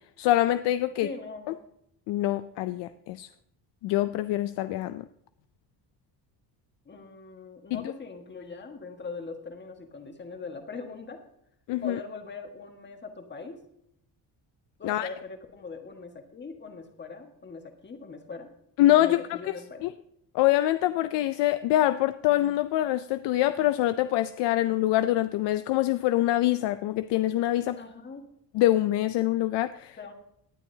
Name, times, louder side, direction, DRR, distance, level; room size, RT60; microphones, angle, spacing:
voice 1, 0.2-1.1 1.5-1.6 2.1-3.3 3.8-5.0 7.7-7.8 11.7-12.0 14.8-15.1 18.8-19.2 19.8-19.9 20.3-27.8 28.5-30.0, left 14 dB, 85° left, 0.5 m, -25 dB
voice 2, 1.0-1.6 6.8-11.2 11.8-13.6 14.8-18.5 19.0-19.9 27.8-28.3 30.0-30.1, left 4 dB, 25° left, 1.6 m, -41 dB
18.5 x 9.7 x 2.8 m
cardioid pair, 140°, 41 cm